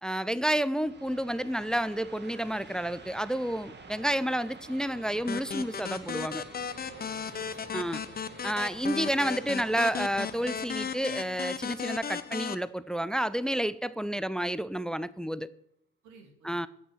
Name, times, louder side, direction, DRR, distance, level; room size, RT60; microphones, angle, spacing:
voice 1, 0.0-6.4 7.7-8.0 8.4-15.5 16.4-16.7, right 1 dB, ahead, 0.4 m, -30 dB
sound 1, 0.7-14.1, right 3 dB, 35° right, 1.8 m, -50 dB
sound 2, 5.3-12.6, left 7 dB, 30° left, 0.8 m, -36 dB
voice 2, 6.8-7.8 13.9-14.2 16.0-16.7, right 5 dB, 70° right, 2.3 m, -54 dB
8.6 x 5.6 x 7.7 m
hypercardioid pair, 60°, 30 cm